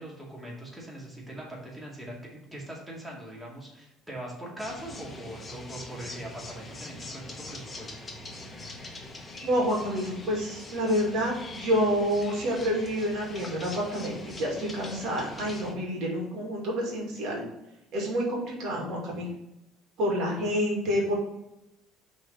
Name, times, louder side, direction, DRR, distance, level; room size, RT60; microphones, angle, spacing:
voice 1, 0.0-7.9, right 1 dB, 10° right, -3 dB, 2.2 m, -41 dB
sound 1, 4.6-15.7, left 2 dB, 20° left, 1.2 m, -43 dB
voice 2, 9.4-17.4 17.9-19.3 20.0-21.1, equal, 65° right, -2 dB, 2.4 m, -28 dB
5.7 x 4.0 x 5.4 m, 0.93 s
supercardioid pair, 100°, 0 cm